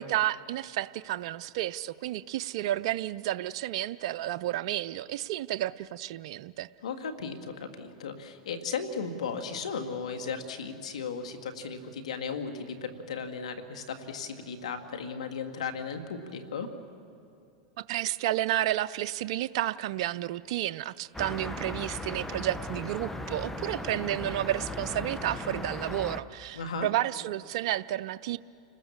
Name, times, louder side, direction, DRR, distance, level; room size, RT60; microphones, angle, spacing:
voice 1, 0.0-6.7 17.8-28.4, right 13 dB, 65° right, 13 dB, 0.5 m, -31 dB
voice 2, 6.8-16.7 26.5-26.9, left 5 dB, 85° left, 6 dB, 2.2 m, -36 dB
sound 1, 21.1-26.2, left 2 dB, 5° left, 1.1 m, -37 dB
29.5 x 20.5 x 7.3 m, 2.6 s
hypercardioid pair, 115°, 3 cm